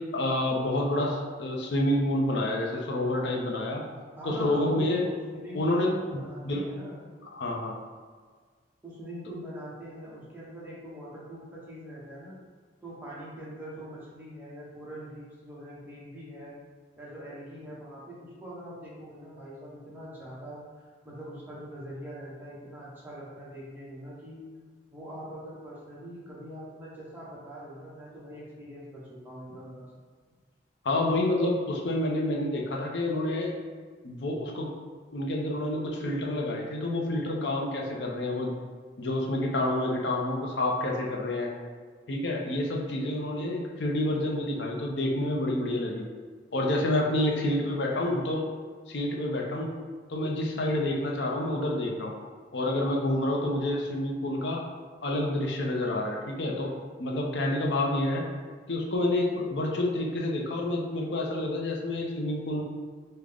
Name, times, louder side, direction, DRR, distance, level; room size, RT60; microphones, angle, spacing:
voice 1, 0.0-3.8 4.2-5.0 5.5-5.9 6.4-6.7 7.3-7.8 30.8-33.5 34.0-34.7 35.1-38.5 39.0-41.5 42.1-46.1 46.5-48.4 48.9-49.7 50.1-52.1 52.5-54.7 55.0-56.7 57.0-58.2 58.7-62.6, left 1 dB, 70° left, -1 dB, 0.6 m, -28 dB
voice 2, 4.2-7.0 8.8-12.4 12.8-16.6 17.0-20.6 21.0-24.4 24.9-29.9 47.3-48.3, equal, 10° right, -7 dB, 0.8 m, -42 dB
3.6 x 2.1 x 3.4 m, 1.5 s
head